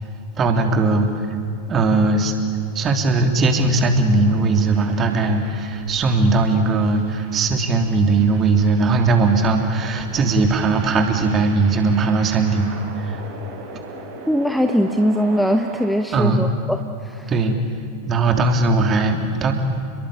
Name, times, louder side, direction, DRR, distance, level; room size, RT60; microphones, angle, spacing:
voice 1, 0.4-1.3 1.7-2.3 2.7-12.7 13.0-13.2 16.1-16.5 17.3-17.6 18.1-19.5, right 3 dB, 25° right, 5 dB, 3.3 m, -19 dB
sound 1, 3.4-15.9, right 3 dB, 50° right, 6.9 m, -40 dB
voice 2, 14.3-17.3, equal, ahead, 6 dB, 1.1 m, -21 dB
30.0 x 22.0 x 8.5 m, 2.5 s
figure-of-eight pair, 90°, 0 cm